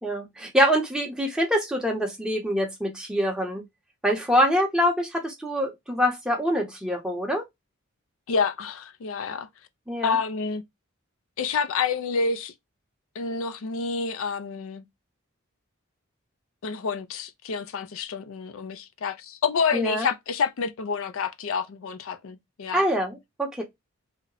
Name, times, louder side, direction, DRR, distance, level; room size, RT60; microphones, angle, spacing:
voice 1, 0.0-3.6 4.0-7.4 9.9-10.2 19.7-20.1 22.7-23.6, equal, 5° right, 0.6 m, -25 dB
voice 2, 8.3-9.5 10.0-10.6 11.4-12.5 13.2-14.8 16.6-22.8, left 5 dB, 70° left, 0.4 m, -28 dB
2.8 x 2.1 x 3.8 m
head